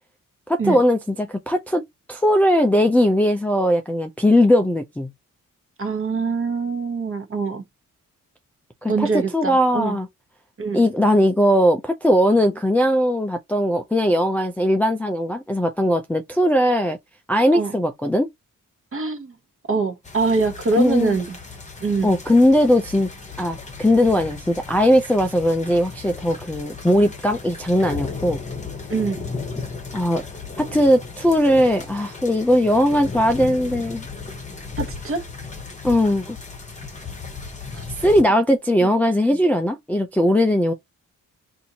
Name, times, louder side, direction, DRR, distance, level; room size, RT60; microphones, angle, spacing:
voice 1, 0.5-1.8 2.1-5.1 8.8-9.1 9.3-10.1 10.7-17.0 17.3-18.3 20.8-21.2 22.0-23.1 23.4-28.4 29.9-30.2 30.6-34.0 35.8-36.4 38.0-40.7, equal, 5° left, 0.4 m, -19 dB
voice 2, 5.8-7.6 8.9-10.0 10.6-10.8 17.5-17.7 18.9-19.3 19.7-21.4 21.8-22.2 28.9-29.2 34.8-35.2 38.8-38.9, right 4 dB, 40° right, 1.0 m, -24 dB
sound 1, 20.0-38.2, left 4 dB, 20° left, 0.9 m, -35 dB
4.2 x 2.6 x 2.8 m
wide cardioid pair, 145°, 34 cm